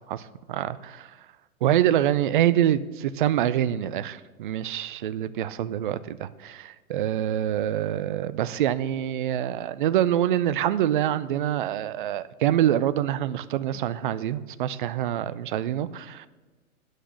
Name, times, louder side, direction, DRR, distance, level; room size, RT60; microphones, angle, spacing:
voice 1, 0.1-1.1 1.6-16.3, right 11 dB, 40° right, 15 dB, 0.4 m, -25 dB
9.9 x 6.4 x 6.3 m, 1.3 s
figure-of-eight pair, 120°, 43 cm